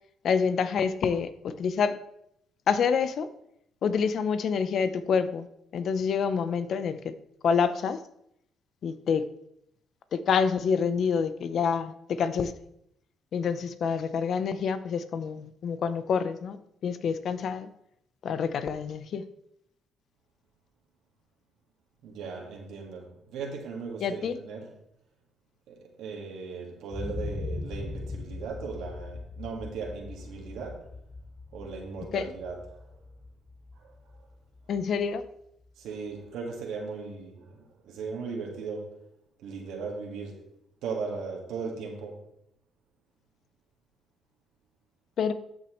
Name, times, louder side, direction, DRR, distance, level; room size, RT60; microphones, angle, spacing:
voice 1, 0.2-1.9 2.7-3.3 3.8-5.5 5.7-7.1 7.4-8.0 8.8-9.2 10.1-12.5 13.3-16.6 16.8-17.7 18.2-19.2 24.0-24.4 32.1-32.3 34.7-35.2 45.2-45.3, left 6 dB, 65° left, 12 dB, 0.7 m, -27 dB
voice 2, 22.0-24.7 25.7-30.9 31.5-32.8 33.8-33.9 35.8-38.9 39.4-40.4 40.8-42.2, right 5 dB, 90° right, 0 dB, 1.9 m, -37 dB
sound 1, 26.9-34.8 35.2-35.3, left 3 dB, 35° left, 2.1 m, -40 dB
13.5 x 6.2 x 3.2 m, 0.76 s
cardioid pair, 90°, 0 cm